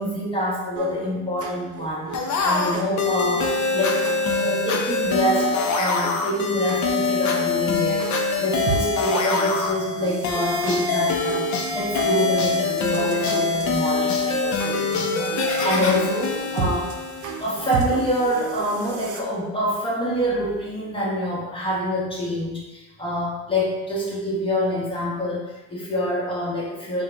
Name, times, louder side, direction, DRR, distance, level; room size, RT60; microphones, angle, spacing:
voice 1, 0.0-4.1 4.4-16.9 17.4-27.0, equal, 15° left, -4 dB, 1.2 m, -26 dB
sound 1, 0.8-19.2, right 5 dB, 85° right, 0.6 m, -35 dB
Nichols Omni Music Box - If You're Happy And You Know It, 2.1-17.6, left 4 dB, 70° left, 0.7 m, -24 dB
3.8 x 2.4 x 4.4 m, 1.1 s
cardioid pair, 90°, 30 cm